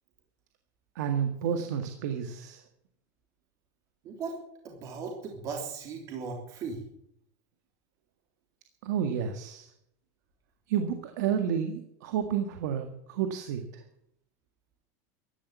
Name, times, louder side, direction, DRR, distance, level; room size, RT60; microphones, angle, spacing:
voice 1, 0.9-2.6 8.8-9.7 10.7-13.8, right 8 dB, 75° right, 6 dB, 1.8 m, -30 dB
voice 2, 4.0-4.4 4.6-6.8, right 5 dB, 35° right, 1 dB, 3.3 m, -37 dB
15.0 x 11.5 x 8.1 m, 0.75 s
supercardioid pair, 165°, 9 cm